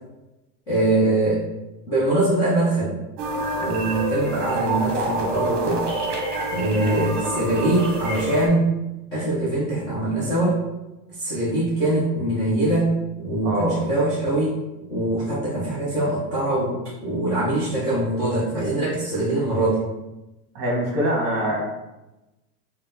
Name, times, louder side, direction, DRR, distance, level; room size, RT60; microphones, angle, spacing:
voice 1, 0.7-1.4 1.9-2.9 3.6-5.8 6.5-8.7 9.1-10.6 11.2-14.5 14.9-19.8, right 2 dB, 10° left, -10 dB, 0.3 m, -23 dB
sound 1, 3.2-8.5, right 2 dB, 50° right, 0.9 m, -27 dB
voice 2, 13.4-13.8 20.5-21.6, equal, 35° right, -3 dB, 1.4 m, -24 dB
3.8 x 2.1 x 3.7 m, 0.99 s
supercardioid pair, 165°, 46 cm